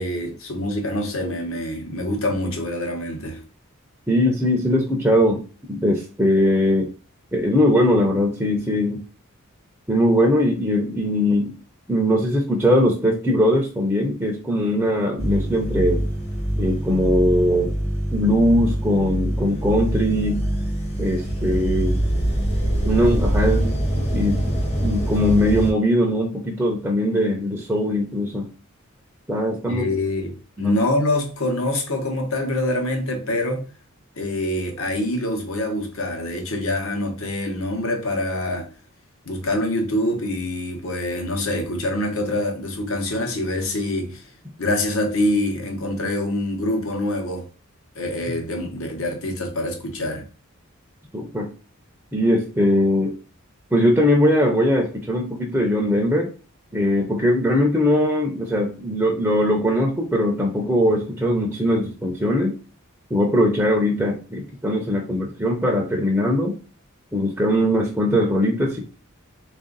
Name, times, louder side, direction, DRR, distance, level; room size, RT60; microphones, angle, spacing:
voice 1, 0.0-3.4 29.7-33.7 34.2-38.7 39.2-44.3 44.6-47.5 47.9-50.2, left 1 dB, 65° left, 1.0 m, -25 dB
voice 2, 4.1-6.9 7.3-9.0 9.9-11.5 11.9-16.0 16.6-17.7 18.1-20.4 21.0-22.0 22.8-23.9 24.1-28.5 29.3-29.8 30.6-30.7 51.1-51.5 52.1-53.2 53.7-56.3 56.7-62.6 63.1-66.5 67.1-68.8, equal, 10° right, 0.5 m, -20 dB
sound 1, 15.2-25.7, right 1 dB, 30° left, 0.9 m, -24 dB
3.4 x 2.6 x 3.8 m
head